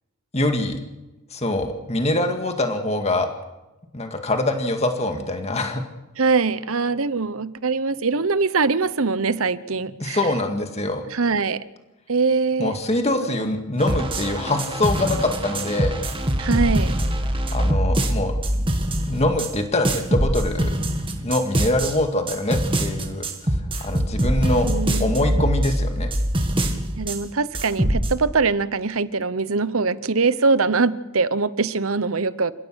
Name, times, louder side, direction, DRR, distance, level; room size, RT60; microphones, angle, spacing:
voice 1, 0.3-0.8 1.3-3.3 3.9-5.8 10.0-11.1 12.6-16.0 17.5-18.4 19.1-20.8 21.2-24.7 25.0-26.1, left 1 dB, 30° left, 5 dB, 2.1 m, -24 dB
voice 2, 6.2-10.3 11.1-11.6 12.1-12.8 13.4-13.5 16.4-17.0 24.6-25.5 27.0-32.5, right 4 dB, 70° right, 15 dB, 1.0 m, -22 dB
sound 1, 13.8-19.5 19.8-21.9 22.3-27.2 27.5-28.1, right 1 dB, 25° right, 2.1 m, -23 dB
29.5 x 16.5 x 6.4 m, 1.0 s
head